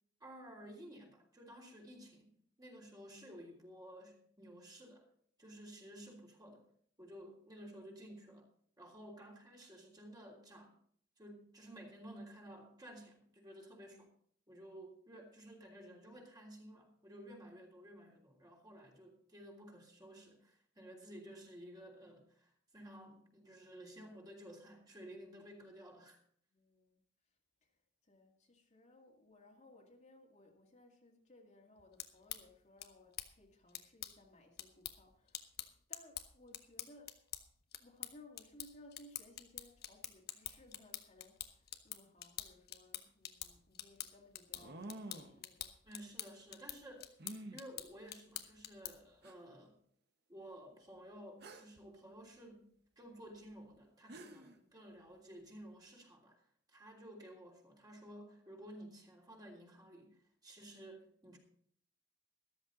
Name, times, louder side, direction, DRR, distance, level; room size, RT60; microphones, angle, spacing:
voice 1, 0.2-2.3 2.6-5.0 5.4-6.6 7.0-8.5 8.8-10.7 11.2-14.1 14.5-26.2 45.8-47.1 47.5-49.7 50.3-52.7 53.0-56.4 56.7-61.4, right 1 dB, 20° right, 0 dB, 3.2 m, -54 dB
voice 2, 26.5-27.0 27.6-35.5 35.9-37.2 37.8-45.8 54.5-54.7, left 1 dB, 40° left, 0 dB, 2.3 m, -62 dB
sound 1, 31.8-49.2, left 11 dB, 55° left, 1.1 m, -48 dB
sound 2, 43.1-43.2 44.5-45.4 47.2-47.6 48.6-48.7 49.2-49.3 51.4-51.8 53.7-53.8 54.1-54.6, right 1 dB, 60° right, 1.4 m, -49 dB
14.0 x 13.0 x 4.0 m, 0.62 s
head